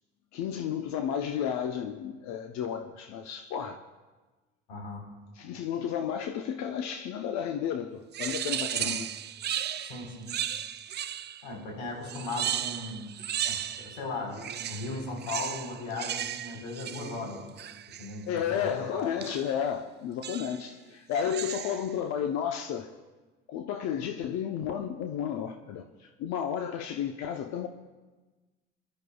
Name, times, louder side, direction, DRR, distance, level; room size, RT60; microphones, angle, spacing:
voice 1, 0.3-3.8 5.3-9.1 18.3-22.9 23.5-27.7, left 8 dB, 60° left, 0.8 m, -32 dB
voice 2, 4.7-5.0 8.7-8.9 9.8-10.3 11.4-13.1 13.4-17.5 18.0-18.7, left 2 dB, 85° left, 4.0 m, -37 dB
sound 1, 8.1-11.5 12.0-14.0 14.3-18.2 19.2-19.6 20.2-20.7 21.1-21.9, right 10 dB, 35° right, 0.5 m, -35 dB
26.0 x 12.0 x 2.3 m
hypercardioid pair, 75°, 30 cm